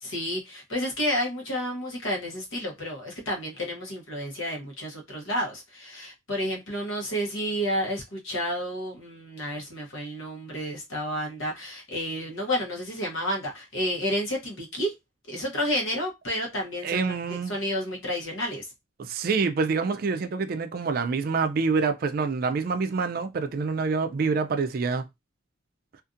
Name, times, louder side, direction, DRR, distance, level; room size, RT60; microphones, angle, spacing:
voice 1, 0.0-14.9 15.3-18.7, equal, 75° left, 1.0 m, -30 dB
voice 2, 16.8-17.5 19.0-25.0, right 4 dB, 45° right, 0.3 m, -26 dB
2.6 x 2.5 x 2.4 m
head